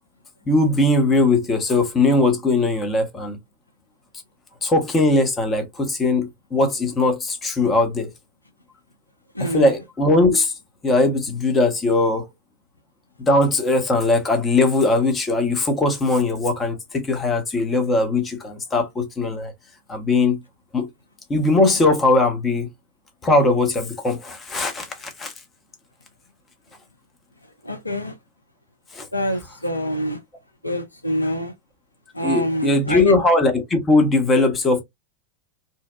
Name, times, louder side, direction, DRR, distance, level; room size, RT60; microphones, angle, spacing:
voice 1, 0.5-3.4 4.6-8.1 9.4-10.5 10.8-12.3 13.2-19.5 19.9-20.4 20.7-20.9 21.3-22.7 23.2-25.3 28.9-29.1 32.2-34.8, left 2 dB, 20° left, 0.7 m, -20 dB
voice 2, 9.3-9.7 27.6-28.1 29.1-30.2 30.6-31.5 32.1-33.1, equal, 85° left, 0.4 m, -26 dB
2.7 x 2.0 x 2.2 m
figure-of-eight pair, 90°, 0 cm